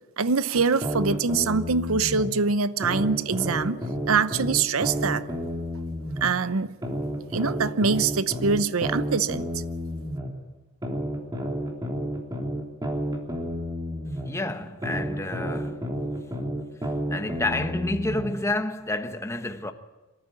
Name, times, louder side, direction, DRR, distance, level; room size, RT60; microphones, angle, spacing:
voice 1, 0.2-3.8 4.1-5.2 6.2-6.8 7.3-9.4, right 4 dB, 90° right, 0.7 m, -24 dB
sound 1, 0.5-2.3 2.8-6.3 6.8-10.3 10.8-14.3 14.8-18.3, equal, 20° right, 3.4 m, -30 dB
voice 2, 14.2-15.9 17.1-19.7, left 2 dB, 15° left, 1.2 m, -29 dB
25.5 x 14.0 x 9.1 m
head